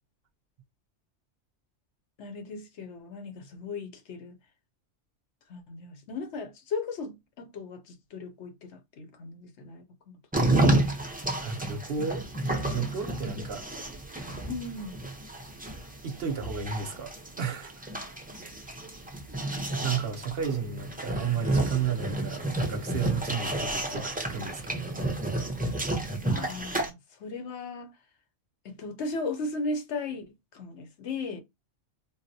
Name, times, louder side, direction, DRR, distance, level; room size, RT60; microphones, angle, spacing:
voice 1, 2.2-4.4 5.5-10.2 14.5-15.0 26.2-27.9 28.6-31.4, left 3 dB, 70° left, 1.0 m, -37 dB
sound 1, 10.3-26.9, right 1 dB, 15° right, 0.3 m, -31 dB
voice 2, 11.4-12.2 12.6-13.6 16.0-17.1 17.4-17.8 19.8-24.9, right 6 dB, 60° right, 0.8 m, -32 dB
3.9 x 2.0 x 2.6 m
omnidirectional pair, 1.3 m